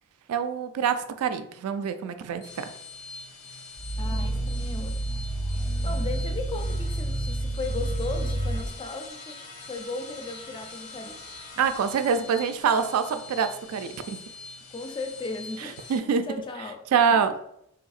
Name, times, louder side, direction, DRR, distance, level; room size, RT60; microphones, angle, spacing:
voice 1, 0.3-2.7 11.6-14.2 15.6-16.3 16.9-17.3, right 6 dB, 80° right, 10 dB, 0.3 m, -25 dB
sound 1, 2.3-16.0, left 3 dB, 80° left, 0.6 m, -44 dB
Growling, 3.8-8.7, right 1 dB, 30° right, 0.5 m, -29 dB
voice 2, 4.0-5.1 5.8-11.2 14.7-16.8 17.1-17.2, left 3 dB, 20° left, 4 dB, 0.3 m, -36 dB
3.3 x 2.7 x 2.4 m, 0.75 s
head